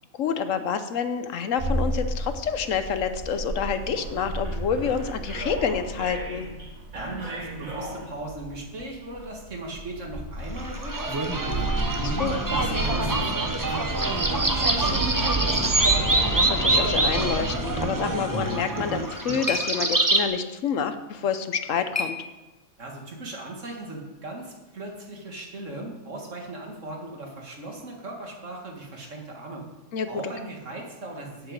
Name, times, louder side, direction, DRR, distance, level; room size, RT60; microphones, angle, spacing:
voice 1, 0.2-6.4 12.0-12.3 16.3-22.2 29.9-30.3, left 6 dB, 70° left, 10 dB, 1.1 m, -28 dB
sound 1, 1.6-19.0, right 2 dB, 85° right, 2.5 m, -33 dB
voice 2, 6.9-11.6 11.9-15.9 22.8-29.6 30.1-31.5, right 2 dB, 65° right, 0 dB, 2.3 m, -38 dB
sound 2, 10.6-20.2, right 2 dB, 15° right, 0.9 m, -25 dB
sound 3, 18.7-22.9, left 3 dB, 15° left, 0.7 m, -37 dB
8.1 x 7.4 x 8.1 m, 1.1 s
omnidirectional pair, 1.4 m